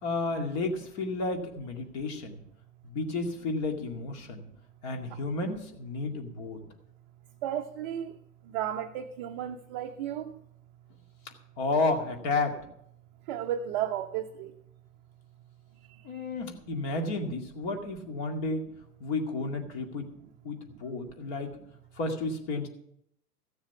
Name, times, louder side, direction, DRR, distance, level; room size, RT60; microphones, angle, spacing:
voice 1, 0.0-2.4 2.8-4.4 4.8-6.6 11.6-12.5 16.0-18.7 19.0-20.1 20.4-21.5 22.0-22.7, left 3 dB, 45° left, 2.2 m, -32 dB
voice 2, 7.4-8.2 8.4-10.4 13.3-14.6 15.9-16.3, right 10 dB, 30° right, 0.6 m, -34 dB
15.5 x 7.2 x 6.0 m
figure-of-eight pair, 100°, 46 cm